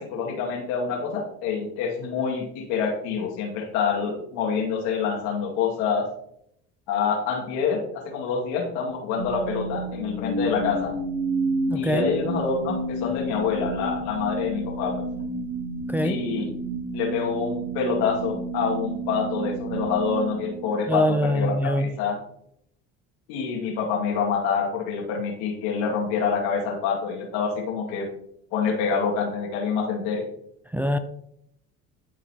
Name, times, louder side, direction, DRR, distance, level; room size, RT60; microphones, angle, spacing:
voice 1, 0.0-6.1 6.9-10.9 11.7-14.9 16.0-16.5 16.9-22.2 23.3-28.1 28.5-30.3, left 6 dB, 85° left, 0 dB, 2.2 m, -26 dB
sound 1, 9.2-21.3, right 2 dB, 75° right, 1.5 m, -30 dB
voice 2, 11.7-12.1 15.9-16.2 20.9-21.9 30.7-31.0, left 1 dB, 5° right, 8 dB, 0.3 m, -23 dB
12.0 x 4.2 x 2.9 m, 0.73 s
supercardioid pair, 100°, 32 cm